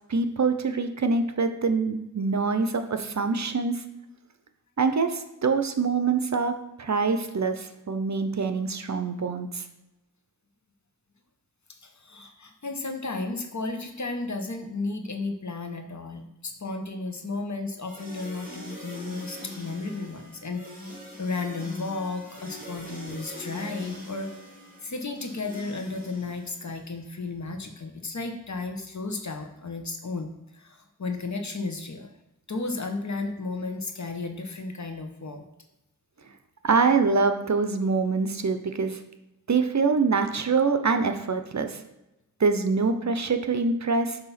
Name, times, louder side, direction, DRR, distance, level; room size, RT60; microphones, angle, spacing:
voice 1, 0.1-3.8 4.8-6.5 6.8-9.6 36.6-39.0 39.5-41.8 42.4-44.2, right 4 dB, 55° right, 7 dB, 0.7 m, -25 dB
voice 2, 11.8-20.9 21.2-24.3 24.8-32.1 32.5-35.4, left 3 dB, 55° left, 4 dB, 1.0 m, -33 dB
sound 1, 17.8-26.9, left 1 dB, 25° right, 2.1 m, -42 dB
8.0 x 2.8 x 5.7 m, 0.93 s
wide cardioid pair, 75°, 34 cm